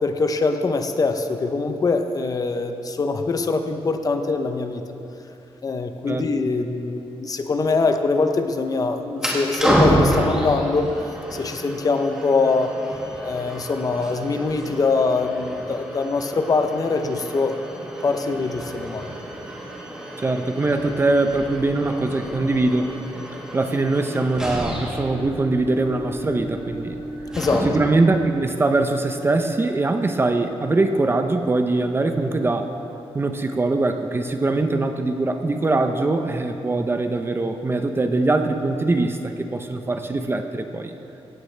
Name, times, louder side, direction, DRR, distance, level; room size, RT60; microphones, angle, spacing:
voice 1, 0.0-4.8 5.6-10.9 11.3-12.7 13.2-17.6 18.0-19.1 27.4-27.7, left 3 dB, 35° left, 6 dB, 0.7 m, -23 dB
sound 1, 9.1-28.1, equal, 5° right, 1.9 m, -29 dB
voice 2, 20.2-22.9 23.5-27.0 27.6-32.7 33.1-40.9, right 2 dB, 20° right, 6 dB, 0.6 m, -22 dB
16.0 x 15.5 x 3.3 m, 2.9 s
wide cardioid pair, 160°, 11 cm